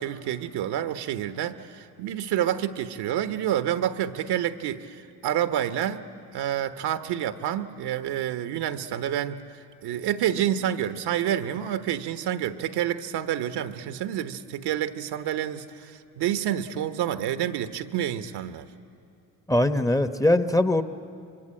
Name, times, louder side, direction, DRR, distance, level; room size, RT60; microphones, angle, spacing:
voice 1, 0.0-6.0 6.3-9.4 9.8-18.7, right 11 dB, 65° right, 10 dB, 1.3 m, -28 dB
voice 2, 19.5-20.8, left 1 dB, 10° left, 10 dB, 1.0 m, -21 dB
26.0 x 23.5 x 8.9 m, 2.5 s
supercardioid pair, 75°, 42 cm